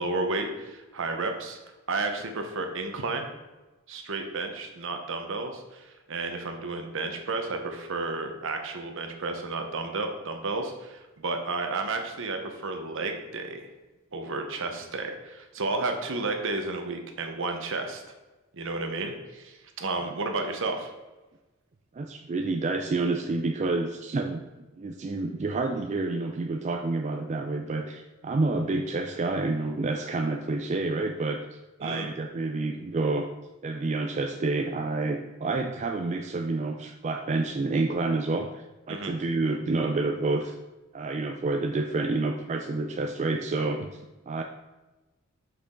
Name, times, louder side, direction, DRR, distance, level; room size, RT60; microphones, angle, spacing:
voice 1, 0.0-1.6 1.9-3.3 3.9-13.7 14.1-18.0 18.5-20.9 31.8-32.1 38.9-39.1, right 3 dB, 60° right, 5 dB, 1.0 m, -32 dB
voice 2, 21.9-24.4 24.8-33.3 33.6-40.6 40.9-44.4, right 3 dB, 35° right, 4 dB, 0.4 m, -29 dB
6.0 x 6.0 x 3.8 m, 1.1 s
head